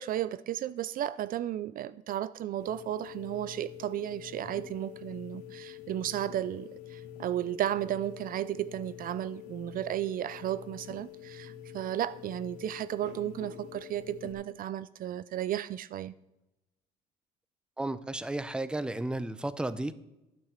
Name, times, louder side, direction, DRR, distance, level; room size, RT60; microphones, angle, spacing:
voice 1, 0.0-16.1, right 12 dB, 55° right, 0.5 m, -34 dB
sound 1, 2.6-14.3, left 11 dB, 90° left, 1.5 m, -46 dB
voice 2, 17.8-19.9, right 2 dB, 5° right, 0.6 m, -33 dB
12.0 x 6.6 x 7.3 m
cardioid pair, 110°, 17 cm